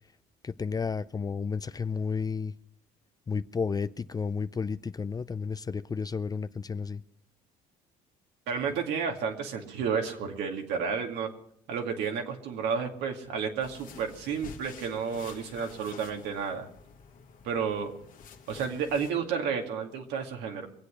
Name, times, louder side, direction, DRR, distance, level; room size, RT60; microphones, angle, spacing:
voice 1, 0.4-2.5 3.3-7.0, left 5 dB, 20° left, 0.5 m, -32 dB
voice 2, 8.5-11.3 11.7-16.7 17.4-17.9 18.5-20.7, right 6 dB, 75° right, 2.3 m, -31 dB
sound 1, 13.6-19.1, left 5 dB, 50° left, 1.7 m, -49 dB
23.5 x 8.2 x 6.3 m
supercardioid pair, 90°, 17 cm